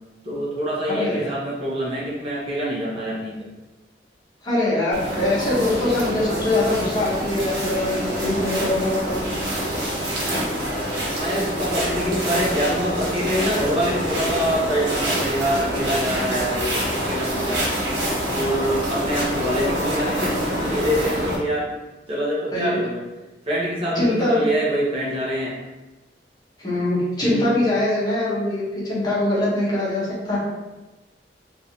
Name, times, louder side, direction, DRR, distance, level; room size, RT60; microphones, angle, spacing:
voice 1, 0.2-3.5 11.2-17.7 18.3-21.7 22.1-23.0 23.5-25.6 27.3-27.5, equal, 35° right, -7 dB, 0.8 m, -25 dB
voice 2, 0.9-1.3 4.4-9.2 22.5-22.8 23.9-24.5 26.6-30.4, left 1 dB, 25° left, -8 dB, 1.0 m, -23 dB
sound 1, 4.9-21.4, equal, 85° right, 1.0 m, -26 dB
3.1 x 2.6 x 2.8 m, 1.1 s
head